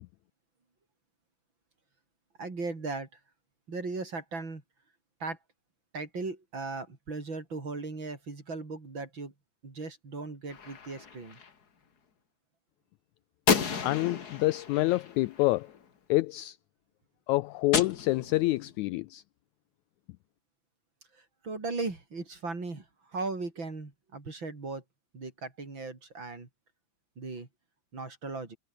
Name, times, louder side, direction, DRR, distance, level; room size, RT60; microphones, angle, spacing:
voice 1, 2.4-3.2 3.7-4.6 5.2-5.4 5.9-9.3 9.6-11.4 21.1-24.8 25.1-26.5 27.2-27.5 27.9-28.6, right 3 dB, 35° right, 5.0 m, -37 dB
Gunshot gunfire, 10.5-11.5 13.5-15.8 17.7-18.7, left 6 dB, 35° left, 1.8 m, -32 dB
voice 2, 13.8-15.7 16.1-16.6 17.3-19.2, left 19 dB, 80° left, 1.7 m, -27 dB
omnidirectional pair, 3.7 m